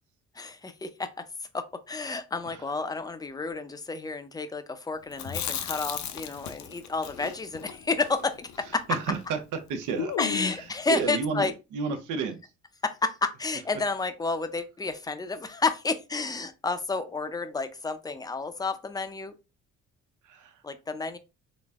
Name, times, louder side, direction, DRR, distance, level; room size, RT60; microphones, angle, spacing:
voice 1, 0.3-1.1 1.5-9.0 10.2-11.5 12.8-19.3 20.6-21.2, left 3 dB, 15° left, 9 dB, 0.5 m, -30 dB
Chewing mastication, 5.1-9.3 9.5-9.6 10.0-10.7, left 8 dB, 65° left, 0.6 m, -35 dB
voice 2, 8.9-9.4 9.7-12.4 20.2-20.6, right 5 dB, 85° right, 6 dB, 0.8 m, -32 dB
4.0 x 2.1 x 3.5 m, 0.28 s
cardioid pair, 90°, 30 cm